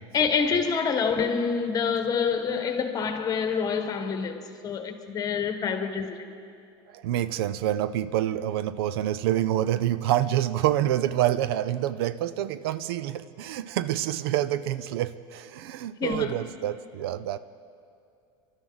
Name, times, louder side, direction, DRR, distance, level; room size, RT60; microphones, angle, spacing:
voice 1, 0.1-6.3 16.0-16.4, left 6 dB, 30° left, 1.2 m, -27 dB
voice 2, 6.9-17.4, right 12 dB, 80° right, 0.5 m, -27 dB
27.5 x 12.5 x 4.0 m
supercardioid pair, 135°, 13 cm